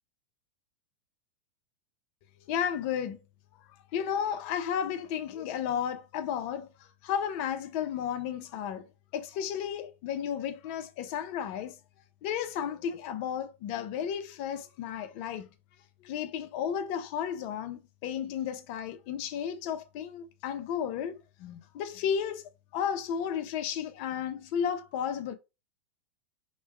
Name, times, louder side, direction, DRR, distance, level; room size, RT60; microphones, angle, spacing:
voice 1, 2.5-3.2 3.9-6.7 7.0-8.9 9.1-11.8 12.2-15.5 16.0-22.4 22.7-25.3, left 8 dB, 50° left, 0.5 m, -33 dB
3.2 x 2.1 x 3.1 m
hypercardioid pair, 105°, 8 cm